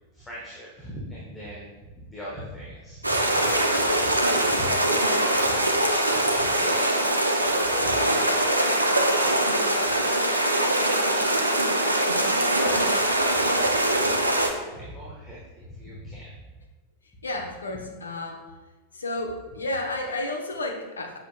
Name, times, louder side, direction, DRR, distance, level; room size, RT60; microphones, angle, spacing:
voice 1, 0.1-5.6 5.9-11.9 12.1-16.3, equal, 10° left, -6 dB, 1.3 m, -41 dB
sound 1, 3.0-14.5, right 1 dB, 85° right, 0.6 m, -22 dB
voice 2, 17.2-18.6 18.9-21.2, left 2 dB, 75° left, 2 dB, 0.9 m, -32 dB
7.2 x 5.7 x 2.3 m, 1.2 s
figure-of-eight pair, 90°, 0 cm